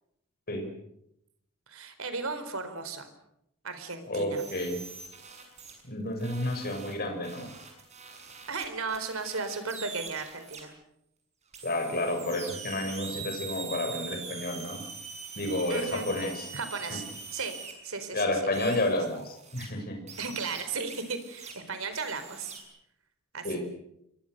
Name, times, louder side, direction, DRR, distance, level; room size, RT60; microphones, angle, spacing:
voice 1, 1.7-3.1 3.6-4.4 8.5-10.7 15.7-16.1 16.5-17.0 17.3-17.5 17.8-18.2 20.2-22.5 23.3-23.6, right 4 dB, 75° right, 9 dB, 4.4 m, -35 dB
voice 2, 4.1-4.8 5.8-7.5 11.6-14.8 15.4-16.5 16.9-17.0 18.1-20.0 23.4-23.6, left 1 dB, 45° left, 3 dB, 7.1 m, -30 dB
sound 1, 4.4-5.8 6.2-10.6 11.5-17.7 18.5-19.7 20.1-21.5 21.9-22.6, right 5 dB, 35° right, 7.1 m, -43 dB
28.5 x 22.5 x 6.8 m, 0.79 s
head